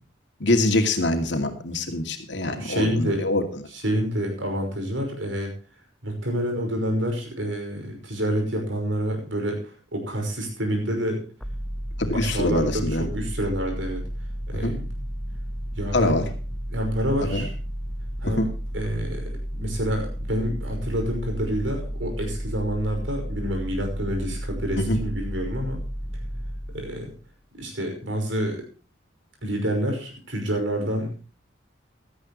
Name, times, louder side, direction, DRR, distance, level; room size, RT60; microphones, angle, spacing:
voice 1, 0.4-3.6 12.0-13.1 14.6-14.7 15.9-16.2 17.2-17.5 18.2-18.5 24.8-25.0, left 1 dB, 70° left, 5 dB, 2.4 m, -24 dB
voice 2, 2.4-3.3 3.7-5.5 6.0-9.6 9.9-11.2 12.1-14.0 14.5-14.9 15.8-16.2 16.7-17.5 18.2-18.5 18.7-25.8 26.7-27.1 27.6-28.6 29.4-31.4, equal, 80° right, 3 dB, 5.7 m, -28 dB
sound 1, 11.4-27.2, equal, 5° left, 0.9 m, -32 dB
16.0 x 13.0 x 3.1 m, 0.36 s
head